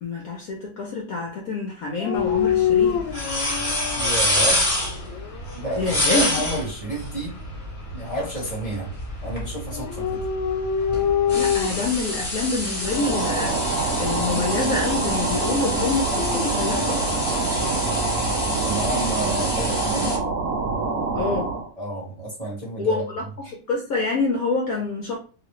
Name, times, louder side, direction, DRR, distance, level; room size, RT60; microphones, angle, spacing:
voice 1, 0.0-3.0 5.8-6.3 11.3-17.2 21.1-21.5 22.8-25.2, left 3 dB, 65° left, -1 dB, 0.9 m, -27 dB
Dog, 2.0-4.2 4.8-5.6 9.7-12.0 12.8-13.2 15.8-17.1, left 8 dB, 85° left, 1.4 m, -25 dB
sound 1, 2.1-20.2, left 1 dB, 25° left, 0.7 m, -28 dB
voice 2, 3.9-4.7 5.5-7.4 7.9-8.9 9.2-10.2 18.6-20.2 21.8-23.0, right 1 dB, 25° right, -6 dB, 0.9 m, -30 dB
sound 2, 12.9-21.7, right 4 dB, 80° right, 0.8 m, -26 dB
3.0 x 2.5 x 3.0 m, 0.39 s
omnidirectional pair, 2.1 m